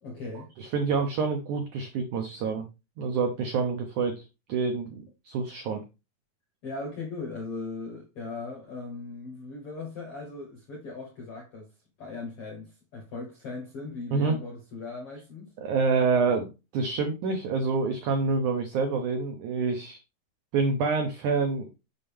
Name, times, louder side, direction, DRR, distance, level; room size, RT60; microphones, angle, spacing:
voice 1, 0.0-0.5 6.6-15.5, left 3 dB, 65° left, 1.4 m, -38 dB
voice 2, 0.6-2.7 3.0-5.8 14.1-14.4 15.6-20.0 20.5-21.8, right 4 dB, 80° right, 1.7 m, -27 dB
6.7 x 5.6 x 3.4 m
omnidirectional pair, 4.6 m